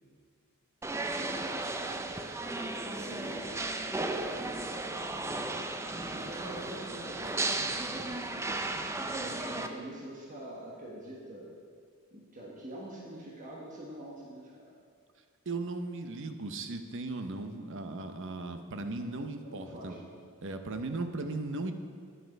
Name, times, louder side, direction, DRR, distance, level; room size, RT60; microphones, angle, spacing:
sound 1, 0.8-9.7, right 2 dB, 10° right, 0.4 m, -35 dB
voice 1, 2.9-3.6 4.0-4.4 6.1-7.5 7.9-8.7 9.1-11.5 12.1-14.7 19.4-20.1, right 1 dB, 35° right, -4 dB, 1.4 m, -45 dB
voice 2, 15.5-19.9 20.4-21.7, right 2 dB, 60° right, 7 dB, 0.7 m, -37 dB
10.5 x 7.8 x 5.3 m, 2.1 s
head